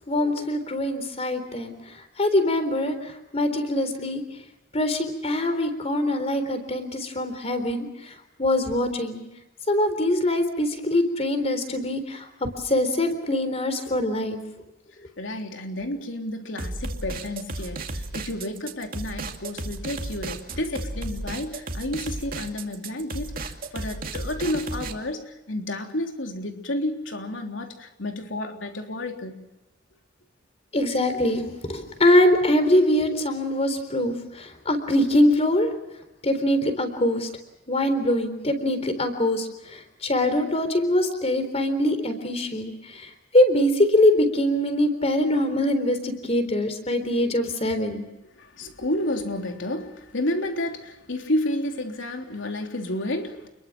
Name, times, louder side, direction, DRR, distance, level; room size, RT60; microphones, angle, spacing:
voice 1, 0.1-1.8 2.2-4.2 4.7-8.1 8.4-9.2 9.7-14.4 30.7-31.4 31.7-35.7 36.2-37.3 37.7-48.0, left 1 dB, 35° left, 10 dB, 3.9 m, -23 dB
voice 2, 15.2-29.4 31.1-31.2 48.4-53.5, left 1 dB, 85° left, 3 dB, 3.5 m, -31 dB
sound 1, 16.6-24.9, right 2 dB, 50° right, 2.4 m, -34 dB
29.0 x 22.0 x 6.2 m, 0.98 s
head